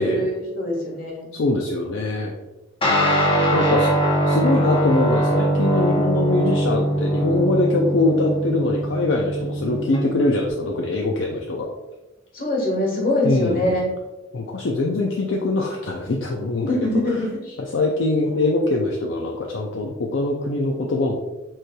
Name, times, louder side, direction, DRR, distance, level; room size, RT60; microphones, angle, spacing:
voice 1, 0.0-1.3 12.3-13.9 16.7-17.6, left 1 dB, 45° left, -2 dB, 1.4 m, -23 dB
voice 2, 1.3-2.3 3.5-3.9 4.3-11.7 13.2-13.8 14.3-16.8 17.7-21.1, left 2 dB, 65° left, 0 dB, 0.5 m, -23 dB
Guitar, 2.8-10.5, right 1 dB, 25° left, 0.9 m, -21 dB
7.5 x 3.1 x 2.2 m, 1.1 s
head